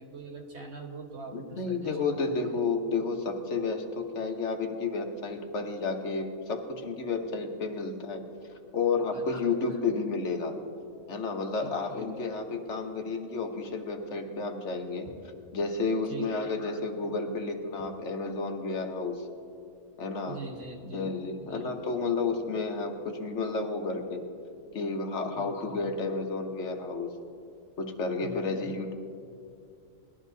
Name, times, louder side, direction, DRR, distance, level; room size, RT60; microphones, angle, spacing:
voice 1, 0.0-2.0 2.5-2.7 9.1-9.6 11.6-12.1 16.1-16.3 20.3-21.1 21.4-21.7 25.3-25.9 28.2-28.7, right 3 dB, 55° right, 2 dB, 1.5 m, -43 dB
voice 2, 1.3-8.2 8.5-10.6 11.1-15.1 15.5-19.3 20.0-20.4 20.9-24.2 24.7-27.1 27.8-28.9, left 4 dB, 60° left, 4 dB, 1.2 m, -31 dB
19.0 x 13.0 x 2.7 m, 2.5 s
omnidirectional pair, 1.4 m